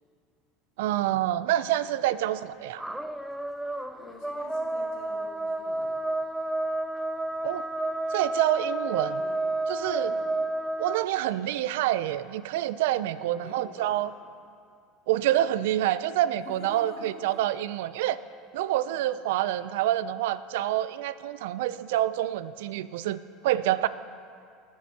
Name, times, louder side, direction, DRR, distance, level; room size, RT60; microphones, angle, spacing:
voice 1, 0.8-2.8 7.4-7.7 8.1-9.2 9.7-10.1 10.8-14.1 15.1-18.2 18.5-23.9, right 13 dB, 85° right, 15 dB, 0.3 m, -27 dB
sound 1, 2.8-11.1, right 2 dB, 5° right, 0.3 m, -31 dB
voice 2, 3.6-6.0 9.2-9.6 10.0-10.3 13.1-14.2 16.4-17.3 18.9-19.1, left 3 dB, 75° left, -2 dB, 2.4 m, -48 dB
18.5 x 7.6 x 2.8 m, 2.3 s
supercardioid pair, 135°, 0 cm